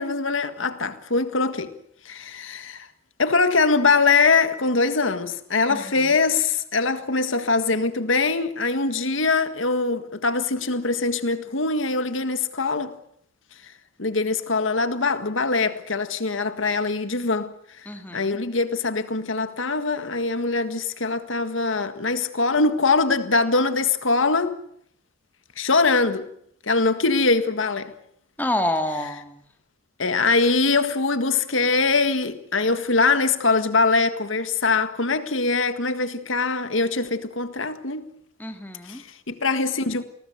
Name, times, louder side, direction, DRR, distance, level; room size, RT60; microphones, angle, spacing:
voice 1, 0.0-1.7 2.1-2.9 3.2-12.9 14.0-17.5 18.1-24.6 25.6-26.3 26.6-27.9 30.0-38.1 38.9-40.0, left 3 dB, 75° left, 1.8 m, -22 dB
voice 2, 5.7-6.1 17.9-18.4 28.4-29.4 38.4-39.0, left 1 dB, 10° left, 2.6 m, -28 dB
29.0 x 19.5 x 8.0 m
head